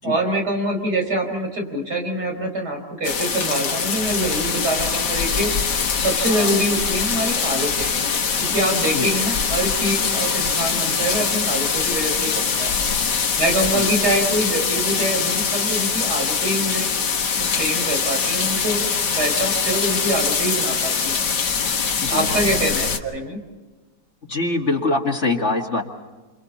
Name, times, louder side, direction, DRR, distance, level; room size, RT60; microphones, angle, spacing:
voice 1, 0.0-5.5 6.0-7.9 8.4-12.7 13.4-16.9 17.3-21.2 22.1-23.4, right 1 dB, 75° right, 2 dB, 5.4 m, -25 dB
sound 1, 3.0-23.0, left 6 dB, 90° left, 2.1 m, -23 dB
voice 2, 21.9-22.3 24.3-25.8, left 3 dB, 45° left, 1 dB, 2.2 m, -23 dB
29.0 x 27.0 x 4.2 m, 1.3 s
omnidirectional pair, 1.8 m